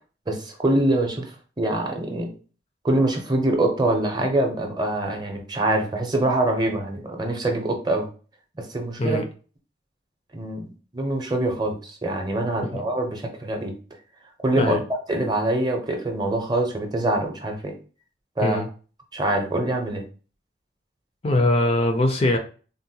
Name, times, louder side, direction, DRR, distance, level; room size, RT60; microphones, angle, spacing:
voice 1, 0.3-2.3 2.8-8.1 8.6-9.2 10.3-13.7 14.4-14.7 15.1-17.7 18.4-18.6 19.1-20.0, right 1 dB, 25° right, 3 dB, 0.6 m, -24 dB
voice 2, 21.2-22.4, left 1 dB, 35° left, 5 dB, 0.4 m, -21 dB
3.8 x 2.1 x 2.8 m, 0.37 s
head